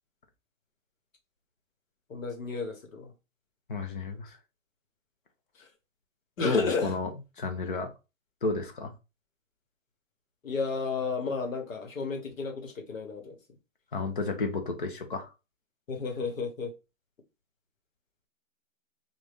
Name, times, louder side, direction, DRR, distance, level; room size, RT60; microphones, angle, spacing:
voice 1, 2.1-3.1 5.6-5.7 6.4-6.9 10.4-13.4 15.9-16.7, left 4 dB, 85° left, 1.3 m, -32 dB
voice 2, 3.7-4.4 6.4-7.1 7.4-7.9 8.4-8.9 13.9-15.3, left 3 dB, 40° left, 0.7 m, -31 dB
3.9 x 2.5 x 3.4 m
hypercardioid pair, 175°, 39 cm